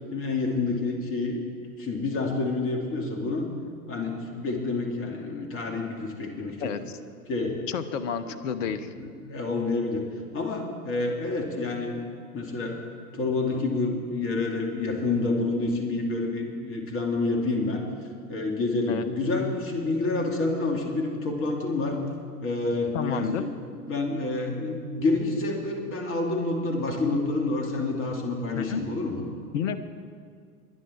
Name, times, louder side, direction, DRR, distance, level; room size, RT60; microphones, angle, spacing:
voice 1, 0.1-1.4 1.8-3.5 3.9-6.7 7.3-7.6 8.3-8.7 9.0-10.0 10.3-12.0 12.3-12.8 13.1-17.8 18.3-22.0 22.4-23.5 23.9-29.2, left 3 dB, 30° left, 2 dB, 2.6 m, -28 dB
voice 2, 6.6-7.0 7.7-8.9 18.9-19.1 22.9-23.5 28.5-28.8 29.5-29.8, left 7 dB, 55° left, 13 dB, 1.0 m, -30 dB
22.0 x 10.5 x 4.5 m, 2.1 s
figure-of-eight pair, 90°, 45 cm